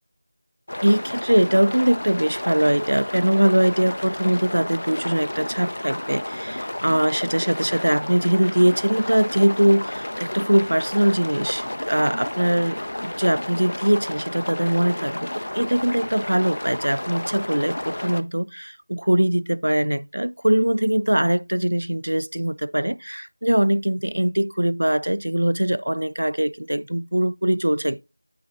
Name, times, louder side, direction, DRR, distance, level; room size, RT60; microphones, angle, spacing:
sound 1, 0.7-18.2, left 1 dB, 55° left, 0.4 m, -31 dB
voice 1, 0.8-28.0, right 1 dB, 75° right, 0.3 m, -22 dB
8.1 x 4.5 x 3.0 m
figure-of-eight pair, 175°, 0 cm